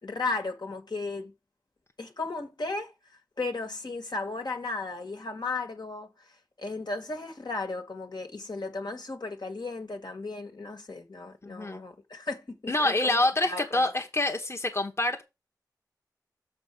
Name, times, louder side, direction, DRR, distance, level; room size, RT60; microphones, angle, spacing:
voice 1, 0.0-1.3 2.0-2.9 3.4-6.1 6.6-13.9, left 3 dB, 70° left, 1.8 m, -35 dB
voice 2, 11.4-11.8 12.7-15.2, left 2 dB, 35° left, 1.1 m, -26 dB
7.2 x 4.3 x 6.0 m
wide cardioid pair, 55°, 8 cm